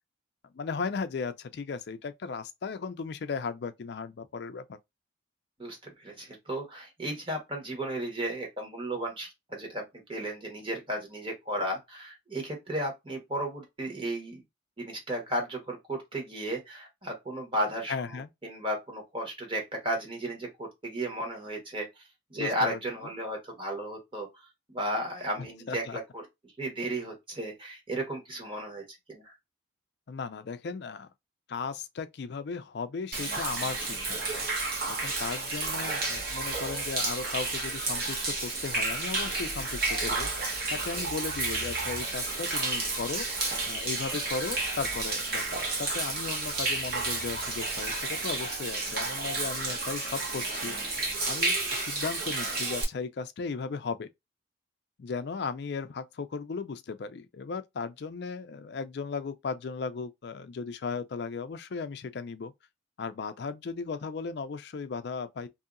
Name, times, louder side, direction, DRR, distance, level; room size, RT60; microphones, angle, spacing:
voice 1, 0.5-4.8 17.9-18.3 22.4-22.8 25.4-26.0 30.1-31.1 31.5-34.5 34.9-51.0 51.3-54.1 55.0-62.5 63.0-65.5, left 5 dB, 55° left, 0.4 m, -36 dB
voice 2, 5.6-14.4 14.8-22.0 22.3-26.2 26.6-29.4 40.9-41.1, right 1 dB, 25° right, 1.2 m, -34 dB
Human voice / Rain / Stream, 33.1-52.8, right 3 dB, 50° right, 1.1 m, -31 dB
2.7 x 2.7 x 2.4 m
head